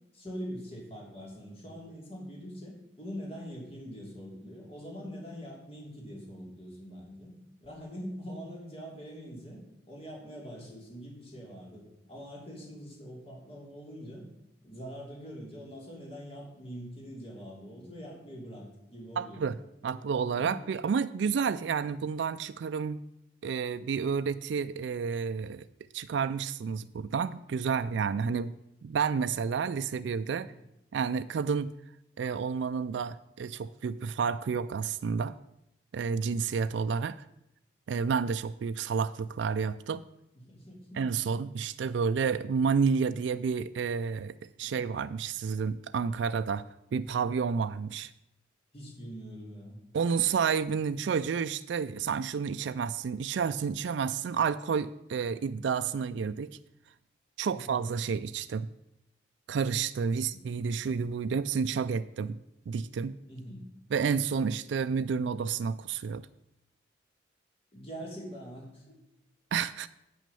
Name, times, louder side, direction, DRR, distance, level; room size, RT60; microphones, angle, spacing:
voice 1, 0.1-7.3 7.6-9.6 9.9-14.2 14.6-19.4 19.8-20.6 30.4-30.6 40.3-41.0 44.6-44.8 48.7-49.8 57.5-57.7 60.1-60.4 63.3-63.6 67.7-68.9, equal, 30° left, -2 dB, 3.0 m, -44 dB
voice 2, 19.2-19.5 19.8-23.0 23.4-25.6 25.9-28.5 28.8-30.5 30.9-31.7 32.2-35.3 35.9-37.2 37.9-40.0 41.0-46.6 46.9-48.1 49.9-56.5 57.4-58.7 59.5-62.4 62.7-63.2 63.9-66.2 69.5-69.9, right 6 dB, 70° right, 12 dB, 0.3 m, -30 dB
8.6 x 6.1 x 6.9 m, 0.85 s
head